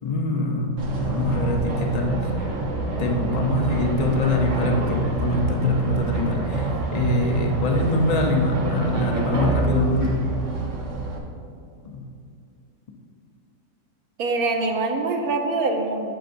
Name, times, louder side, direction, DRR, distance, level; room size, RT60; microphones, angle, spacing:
voice 1, 0.0-2.5 3.0-10.2 11.9-12.1, left 1 dB, 70° left, 2 dB, 0.3 m, -24 dB
sound 1, 0.8-11.2, right 2 dB, 50° right, 1.3 m, -26 dB
voice 2, 14.2-16.1, right 3 dB, 65° right, 3 dB, 1.0 m, -24 dB
10.5 x 6.9 x 2.6 m, 2.6 s
omnidirectional pair, 1.8 m